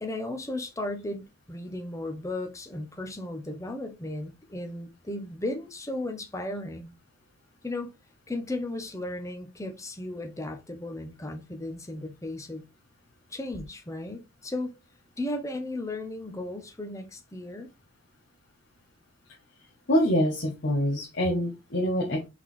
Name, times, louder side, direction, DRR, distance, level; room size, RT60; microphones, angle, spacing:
voice 1, 0.0-6.9 7.6-7.9 8.3-12.7 13.3-14.7 15.2-17.7, left 1 dB, 15° left, 0.8 m, -35 dB
voice 2, 19.9-22.3, equal, 60° left, 0.9 m, -25 dB
4.0 x 3.6 x 3.1 m
head